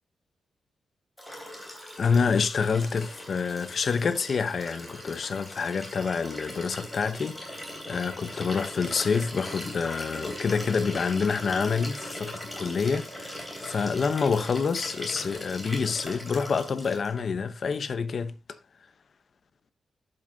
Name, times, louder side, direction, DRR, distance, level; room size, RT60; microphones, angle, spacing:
Liquid, 1.2-17.2 18.5-18.6, equal, ahead, 3.2 m, -40 dB
voice 1, 2.0-7.6 7.9-18.3, left 5 dB, 45° left, 0.8 m, -27 dB
11.0 x 7.9 x 2.7 m
wide cardioid pair, 165°, 0 cm